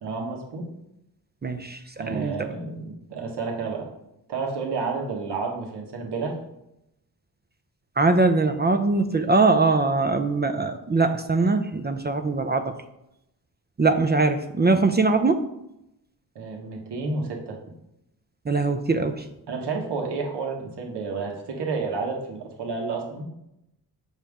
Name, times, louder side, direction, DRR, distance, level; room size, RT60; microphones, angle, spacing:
voice 1, 0.0-0.7 2.0-3.9 4.3-6.4 16.3-17.6 19.5-23.2, right 4 dB, 80° right, 0 dB, 1.6 m, -30 dB
voice 2, 1.4-2.4 8.0-12.8 13.8-15.4 18.5-19.3, right 3 dB, 25° right, 7 dB, 0.5 m, -22 dB
7.3 x 5.7 x 3.6 m, 0.83 s
cardioid pair, 85°, 40 cm